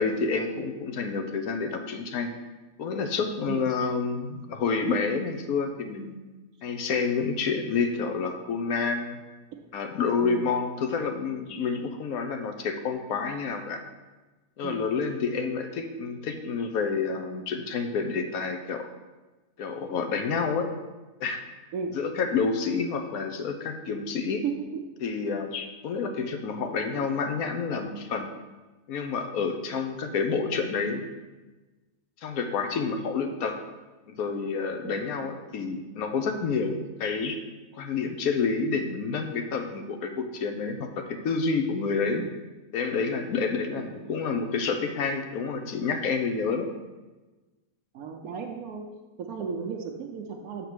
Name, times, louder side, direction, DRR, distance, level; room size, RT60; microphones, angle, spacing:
voice 1, 0.0-2.3 2.8-6.2 6.6-9.2 9.7-13.8 14.6-18.9 19.6-20.7 21.2-21.4 21.9-24.4 25.0-28.3 28.9-31.1 32.2-33.5 34.1-37.4 37.7-42.2 42.7-46.7, left 5 dB, 85° left, 6 dB, 1.2 m, -29 dB
voice 2, 47.9-48.8 49.3-50.7, right 6 dB, 85° right, 0 dB, 1.1 m, -34 dB
6.7 x 4.2 x 6.1 m, 1.2 s
omnidirectional pair, 1.5 m